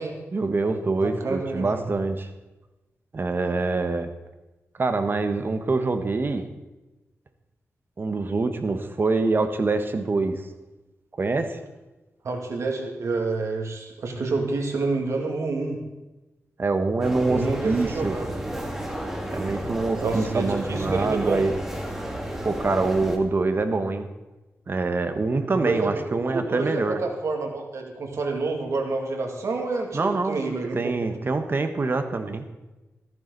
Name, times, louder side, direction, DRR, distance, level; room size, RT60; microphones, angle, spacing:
voice 1, 0.3-2.3 3.1-4.1 4.8-6.5 8.0-10.5 11.2-11.6 16.6-18.2 19.3-21.6 22.4-24.1 24.7-27.0 29.9-30.4 30.7-32.4, right 3 dB, 45° right, 8 dB, 1.3 m, -25 dB
voice 2, 1.0-1.8 12.2-15.8 17.2-18.3 20.0-21.4 25.5-31.1, right 3 dB, 70° right, 2 dB, 2.5 m, -28 dB
sound 1, 17.0-23.2, equal, 5° right, 2.2 m, -32 dB
14.5 x 13.5 x 4.1 m, 1.1 s
wide cardioid pair, 95°, 5 cm